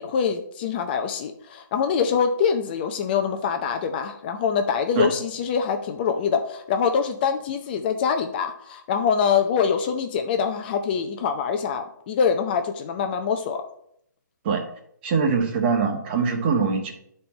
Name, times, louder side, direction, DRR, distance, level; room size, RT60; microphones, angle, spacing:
voice 1, 0.0-13.6, left 6 dB, 30° left, 6 dB, 0.6 m, -24 dB
voice 2, 15.0-16.9, right 5 dB, 35° right, 3 dB, 1.4 m, -22 dB
10.0 x 4.3 x 4.3 m, 0.71 s
hypercardioid pair, 150°, 10 cm